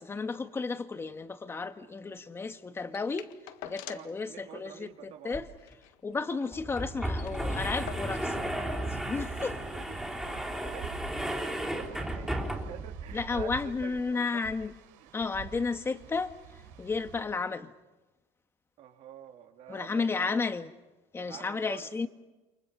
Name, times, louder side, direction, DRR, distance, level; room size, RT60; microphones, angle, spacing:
voice 1, 0.0-3.3 3.6-5.5 6.0-9.5 13.1-14.7 15.1-16.3 16.8-17.7 19.7-20.7 21.1-22.1, left 4 dB, 20° left, 1.5 m, -33 dB
sound 1, 2.9-4.2 4.5-4.6 4.9-5.1 5.5-6.6 6.9-7.0 7.1-8.4 9.3-9.4, left 12 dB, 85° left, 1.7 m, -47 dB
voice 2, 3.9-5.4 9.4-14.7 15.0-15.1 15.5-15.7 18.8-20.4 21.2-21.9, right 10 dB, 60° right, 3.5 m, -48 dB
sound 2, 5.3-5.4 5.7-5.8 6.5-12.9, right 1 dB, 5° right, 3.4 m, -34 dB
sound 3, 7.0-17.2, right 6 dB, 85° right, 5.5 m, -48 dB
29.5 x 27.5 x 5.5 m
cardioid pair, 135°, 13 cm